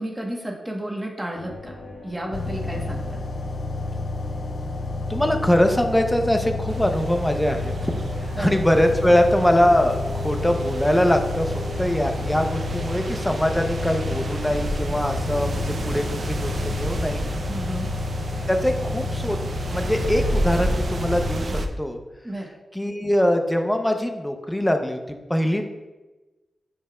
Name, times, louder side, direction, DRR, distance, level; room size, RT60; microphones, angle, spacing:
voice 1, 0.0-1.7 2.0-3.2 8.4-8.5 17.5-17.9 22.2-22.5, right 1 dB, 15° right, 0 dB, 1.2 m, -31 dB
sound 1, 1.3-15.5, left 2 dB, 85° left, 1.5 m, -41 dB
sound 2, 2.3-21.4, left 2 dB, 55° left, 0.5 m, -30 dB
voice 2, 5.1-17.2 18.5-19.4 19.7-21.5 21.8-22.0 22.7-25.7, left 1 dB, 5° left, 5 dB, 0.7 m, -22 dB
sound 3, 6.7-21.7, right 1 dB, 60° right, 0.6 m, -31 dB
9.5 x 5.4 x 2.4 m, 1.1 s
wide cardioid pair, 100°, 0 cm